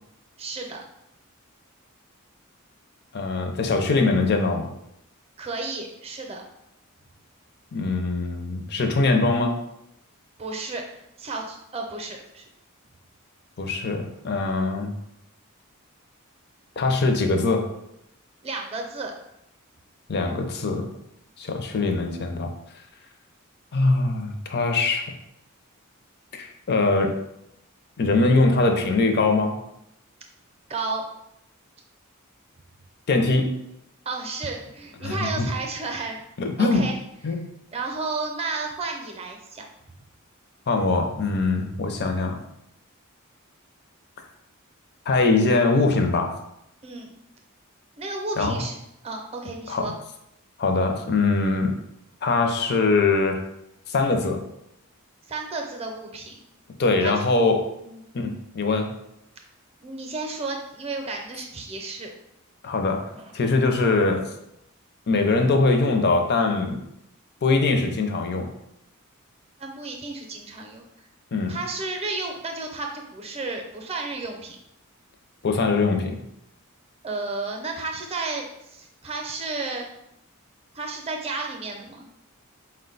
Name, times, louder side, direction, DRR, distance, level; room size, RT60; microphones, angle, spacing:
voice 1, 0.4-0.9 5.4-6.4 10.4-10.8 11.2-12.4 18.4-19.1 30.7-31.0 34.1-36.2 36.6-37.0 37.7-39.6 46.8-47.1 48.0-48.8 49.0-49.9 55.3-56.4 57.0-57.2 57.8-58.0 59.8-62.1 63.1-63.3 69.6-70.8 71.5-74.6 77.0-79.9 80.7-82.1, right 3 dB, 30° right, 2 dB, 0.6 m, -32 dB
voice 2, 3.1-4.7 7.7-9.6 13.6-14.9 16.8-17.6 20.1-20.9 21.4-22.5 23.7-25.0 26.3-27.1 28.0-29.6 33.1-33.6 35.0-35.5 36.4-36.9 37.2-37.5 40.7-42.3 45.1-46.4 48.4-48.6 49.7-49.8 50.6-51.7 52.2-53.4 53.9-54.4 56.8-57.7 58.1-58.9 62.6-64.3 65.1-66.8 67.4-68.5 71.3-71.6 75.4-76.2, left 3 dB, 50° left, 4 dB, 0.5 m, -22 dB
4.5 x 2.2 x 3.8 m, 0.81 s
head